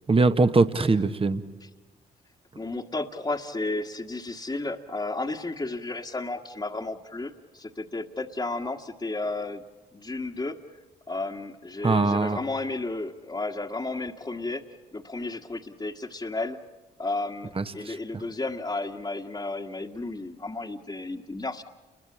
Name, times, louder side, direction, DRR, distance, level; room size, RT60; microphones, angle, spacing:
voice 1, 0.1-1.4 11.8-12.4 17.6-18.0, right 3 dB, 30° right, 10 dB, 1.4 m, -22 dB
voice 2, 2.6-9.6 9.9-10.6 11.1-14.6 14.9-16.6 17.0-21.6, left 2 dB, 25° left, 0 dB, 1.7 m, -33 dB
29.5 x 22.0 x 8.8 m, 1.2 s
supercardioid pair, 50°, 18 cm